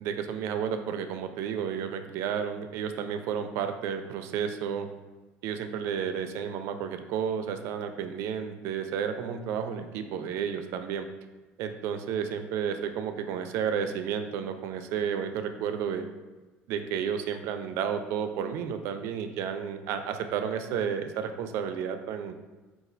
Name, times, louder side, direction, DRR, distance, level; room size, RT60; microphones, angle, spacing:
voice 1, 0.0-4.9 5.4-11.1 11.6-16.1 16.7-22.4, right 7 dB, 65° right, 7 dB, 0.4 m, -32 dB
4.1 x 2.4 x 3.8 m, 1.2 s
cardioid pair, 150°, 5 cm